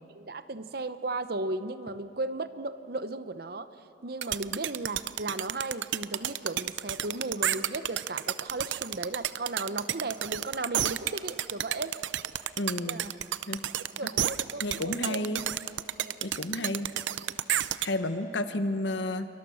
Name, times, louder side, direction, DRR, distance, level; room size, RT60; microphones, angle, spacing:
voice 1, 0.1-3.7 4.0-12.0 12.8-13.1 13.8-15.2 16.0-16.1, right 2 dB, 55° right, 12 dB, 0.8 m, -35 dB
sound 1, 4.2-17.9, right 11 dB, 90° right, 0.6 m, -30 dB
voice 2, 12.6-13.0 13.5-13.6 14.6-15.4 16.2-16.9 17.8-19.3, left 1 dB, 80° left, 10 dB, 1.2 m, -31 dB
27.0 x 24.0 x 6.4 m, 3.0 s
head